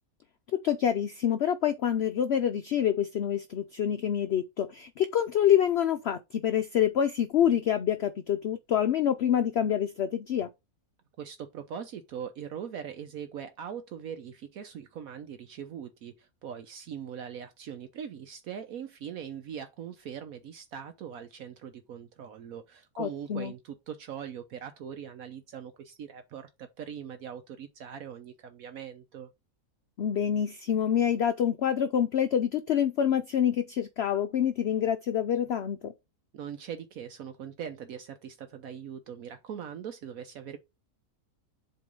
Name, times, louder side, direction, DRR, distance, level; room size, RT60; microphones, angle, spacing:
voice 1, 0.5-10.5 23.0-23.5 30.0-35.9, left 9 dB, 65° left, 0.6 m, -26 dB
voice 2, 11.2-29.3 36.3-40.6, right 8 dB, 70° right, 1.1 m, -41 dB
7.8 x 3.1 x 5.2 m
omnidirectional pair, 1.6 m